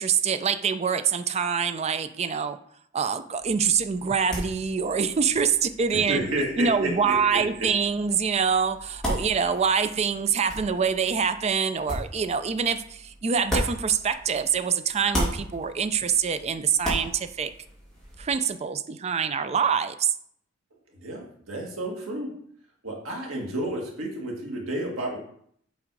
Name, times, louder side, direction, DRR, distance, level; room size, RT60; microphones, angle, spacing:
voice 1, 0.0-2.6 2.9-6.3 6.6-17.5 18.2-20.1, right 6 dB, 30° right, 11 dB, 0.4 m, -25 dB
sound 1, 3.4-14.6 14.9-18.3, equal, 5° left, 2.3 m, -36 dB
voice 2, 5.9-7.7 21.0-22.4 22.8-25.2, right 1 dB, 90° right, 0 dB, 1.8 m, -31 dB
7.3 x 3.6 x 4.7 m, 0.65 s
head